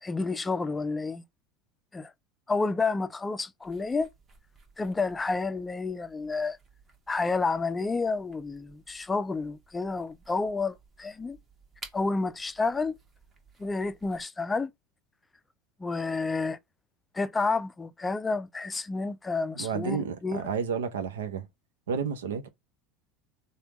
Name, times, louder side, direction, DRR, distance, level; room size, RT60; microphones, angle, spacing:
voice 1, 0.0-1.2 1.9-2.1 2.5-4.1 4.8-6.6 7.1-11.4 11.9-13.0 13.6-14.7 15.8-16.6 17.1-20.4, left 3 dB, 15° left, 0.4 m, -30 dB
sound 1, 3.6-14.2, right 4 dB, 30° right, 1.1 m, -55 dB
voice 2, 19.5-21.5 21.9-22.5, right 6 dB, 90° right, 0.6 m, -31 dB
3.3 x 2.2 x 2.9 m
hypercardioid pair, 100°, 0 cm